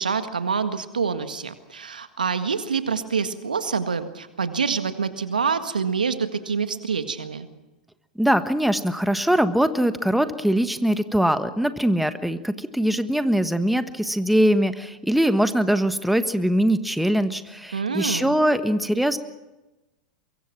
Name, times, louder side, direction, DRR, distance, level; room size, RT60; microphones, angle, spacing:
voice 1, 0.0-7.5 17.7-18.4, right 5 dB, 85° right, 9 dB, 1.8 m, -26 dB
voice 2, 8.2-19.2, equal, ahead, 11 dB, 1.4 m, -22 dB
24.0 x 22.5 x 6.1 m, 1.1 s
hypercardioid pair, 95°, 4 cm